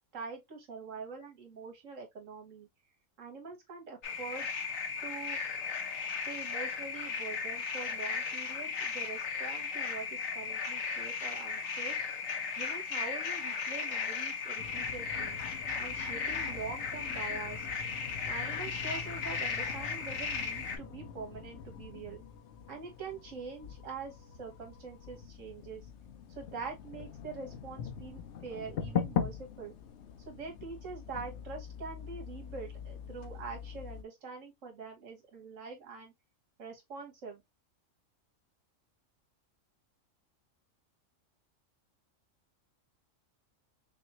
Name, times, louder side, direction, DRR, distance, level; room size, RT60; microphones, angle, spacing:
voice 1, 0.1-2.7 3.2-4.5 5.0-5.4 6.1-12.0 12.6-15.4 15.8-17.7 18.2-22.2 22.7-25.9 26.4-29.7 30.3-36.1 36.6-37.4, right 5 dB, 70° right, 1.7 m, -44 dB
sound 1, 4.0-20.8, left 5 dB, 80° left, 1.3 m, -36 dB
sound 2, 14.6-34.0, left 8 dB, 65° left, 0.9 m, -42 dB
5.3 x 2.3 x 3.0 m
omnidirectional pair, 1.4 m